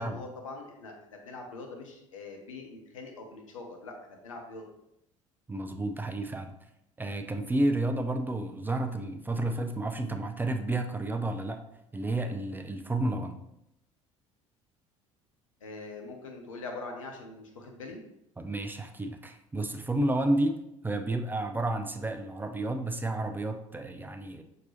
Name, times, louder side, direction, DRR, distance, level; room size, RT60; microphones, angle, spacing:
voice 1, 0.0-3.9 4.2-4.6 15.6-18.0, left 3 dB, 80° left, 2 dB, 0.7 m, -43 dB
voice 2, 5.5-6.5 7.0-11.6 11.9-13.4 18.4-20.6 20.8-24.4, right 1 dB, 10° right, 5 dB, 0.4 m, -31 dB
5.9 x 2.8 x 2.8 m, 0.81 s
figure-of-eight pair, 60°, 17 cm